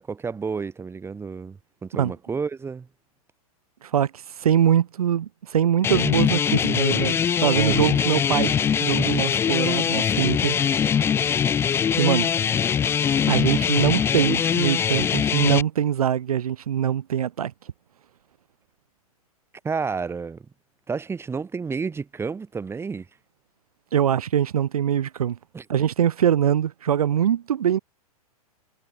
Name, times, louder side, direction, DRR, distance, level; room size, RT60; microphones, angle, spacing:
voice 1, 0.0-2.9 19.6-20.5 20.9-23.1 25.5-25.6, right 5 dB, 15° right, 2.4 m, -30 dB
voice 2, 3.8-8.5 8.8-10.6 12.0-12.3 13.3-17.5 23.9-25.4 25.7-27.8, right 9 dB, 70° right, 2.7 m, -23 dB
sound 1, 5.8-15.6, left 8 dB, 15° left, 0.4 m, -22 dB
hypercardioid pair, 115°, 19 cm